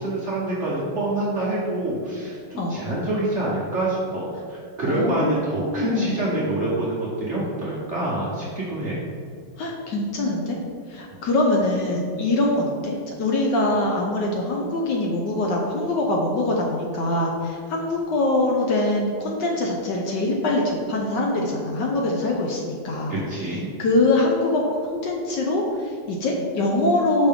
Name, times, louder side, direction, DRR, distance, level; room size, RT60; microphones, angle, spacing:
voice 1, 0.0-9.0 23.1-23.7, right 1 dB, 45° right, -7 dB, 1.1 m, -26 dB
voice 2, 4.9-6.2 9.6-10.6 10.9-23.2 23.8-27.3, left 2 dB, 65° left, -1 dB, 1.2 m, -23 dB
5.9 x 5.3 x 3.6 m, 2.4 s
omnidirectional pair, 2.3 m